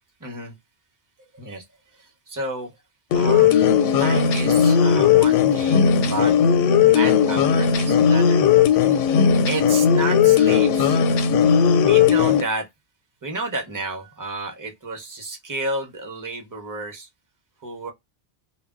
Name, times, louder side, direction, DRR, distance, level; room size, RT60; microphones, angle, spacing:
voice 1, 0.2-0.5 1.3-1.6 1.9-2.7 3.1-3.6 4.0-6.3 6.9-8.4 9.5-11.0 11.8-12.7 13.2-17.1 17.6-17.9, right 2 dB, 20° right, 0.6 m, -31 dB
sound 1, 3.1-12.4, left 7 dB, 90° left, 0.9 m, -17 dB
2.1 x 2.1 x 3.5 m
omnidirectional pair, 1.2 m